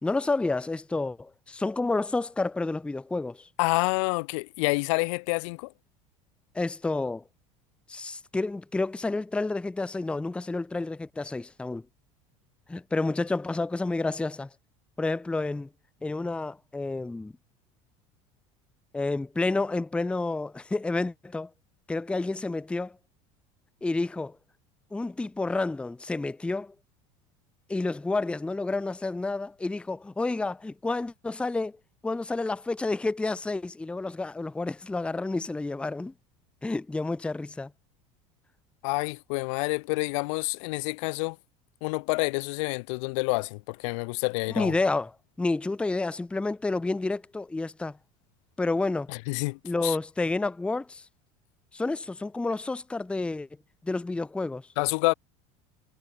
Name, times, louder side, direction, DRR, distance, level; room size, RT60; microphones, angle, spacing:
voice 1, 0.0-3.5 6.5-7.2 7.9-11.9 12.7-14.5 15.0-15.7 16.0-17.3 18.9-21.5 21.9-23.0 23.8-24.4 24.9-26.7 27.7-31.8 32.0-36.1 36.6-37.7 44.6-45.1 45.4-48.0 48.6-49.1 49.6-51.0 51.7-53.5 53.8-54.7, left 3 dB, 5° left, 0.5 m, -30 dB
voice 2, 3.6-5.7 38.8-41.4 41.8-44.7 49.1-50.0 54.8-55.1, left 27 dB, 80° left, 0.8 m, -28 dB
supercardioid pair, 100°, 16 cm